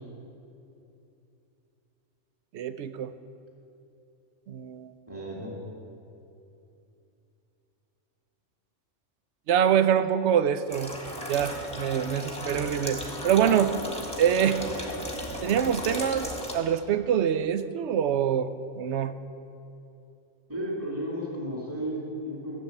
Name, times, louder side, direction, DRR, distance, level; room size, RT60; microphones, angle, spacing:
voice 1, 2.5-3.1 4.5-4.9 9.5-10.9 11.3-13.7 14.2-14.6 15.4-18.5 18.8-19.1, right 9 dB, 70° right, 11 dB, 0.8 m, -25 dB
voice 2, 5.1-5.5 20.5-22.6, equal, 10° right, -5 dB, 2.4 m, -33 dB
sound 1, 10.7-16.5, equal, 5° left, 1.5 m, -35 dB
13.0 x 7.2 x 8.2 m, 2.7 s
omnidirectional pair, 1.3 m